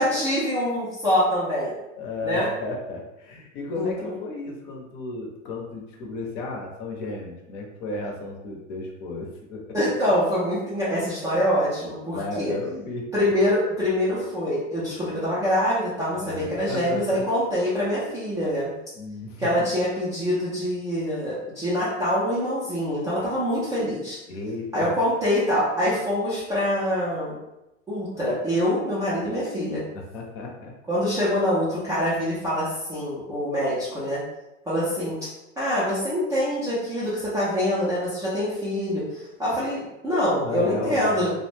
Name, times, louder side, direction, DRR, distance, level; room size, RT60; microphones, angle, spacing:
voice 1, 0.0-1.7 2.2-2.5 3.7-4.2 9.7-12.5 13.1-18.7 19.4-24.2 24.7-27.3 27.9-29.8 30.9-34.2 34.7-35.1 35.6-41.3, equal, 10° right, -11 dB, 0.3 m, -25 dB
voice 2, 2.0-9.8 12.1-13.1 16.1-17.2 18.9-19.7 24.3-24.9 30.1-30.7 40.2-41.3, left 2 dB, 40° left, 0 dB, 0.6 m, -34 dB
2.4 x 2.0 x 3.2 m, 0.93 s
hypercardioid pair, 125°, 40 cm